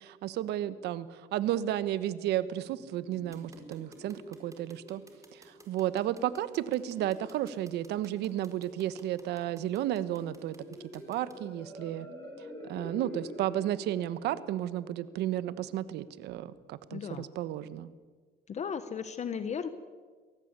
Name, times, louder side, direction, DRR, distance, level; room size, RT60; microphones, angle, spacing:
voice 1, 0.0-5.0 5.3-10.6 10.9-12.1 12.6-17.9, right 12 dB, 80° right, 15 dB, 1.3 m, -33 dB
sound 1, 2.5-16.2, left 1 dB, 15° left, 6.4 m, -49 dB
sound 2, 3.3-11.3, right 3 dB, 20° right, 4.2 m, -55 dB
voice 2, 16.9-17.3 18.5-19.7, left 7 dB, 40° left, 12 dB, 1.3 m, -35 dB
24.0 x 18.0 x 8.2 m, 1.5 s
cardioid pair, 110°, 17 cm